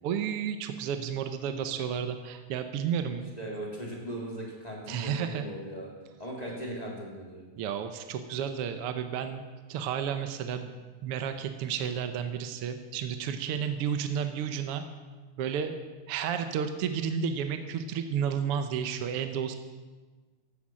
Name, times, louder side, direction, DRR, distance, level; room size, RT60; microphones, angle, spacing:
voice 1, 0.0-3.3 4.9-5.5 7.6-9.4 9.7-10.7 11.0-14.8 15.4-15.8 16.1-19.5, right 8 dB, 65° right, 8 dB, 1.5 m, -32 dB
voice 2, 3.4-5.9 6.2-7.4, right 1 dB, 15° left, -3 dB, 2.9 m, -38 dB
16.0 x 11.5 x 6.3 m, 1.3 s
omnidirectional pair, 3.4 m